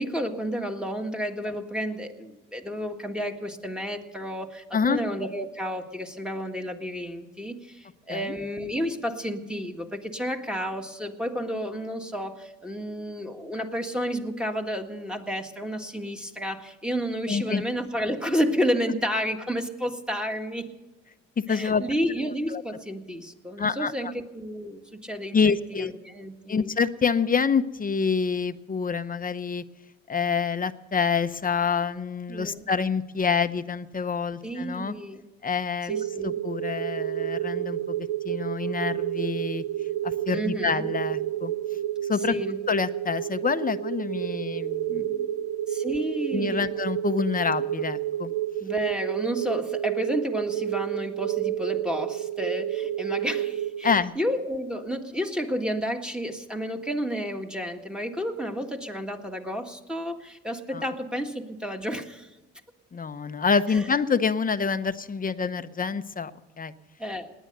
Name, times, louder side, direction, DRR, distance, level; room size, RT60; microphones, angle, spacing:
voice 1, 0.0-20.7 21.5-26.7 32.3-32.7 34.4-35.2 35.9-36.4 40.3-40.8 42.3-42.6 45.7-46.7 48.6-62.3 63.7-63.9 67.0-67.3, equal, 5° right, 4 dB, 1.7 m, -31 dB
voice 2, 17.3-17.6 21.4-21.8 22.5-22.6 23.6-24.1 25.3-25.9 26.5-29.6 30.1-34.9 35.4-35.9 36.2-39.6 40.0-41.5 42.1-42.3 42.7-45.3 46.3-48.3 53.8-54.1 60.7-60.9 62.9-66.3 66.6-66.7, left 5 dB, 30° left, 12 dB, 0.8 m, -27 dB
sound 1, 35.9-54.0, right 12 dB, 80° right, 0.5 m, -30 dB
19.0 x 10.0 x 6.7 m, 1.1 s
cardioid pair, 90°, 30 cm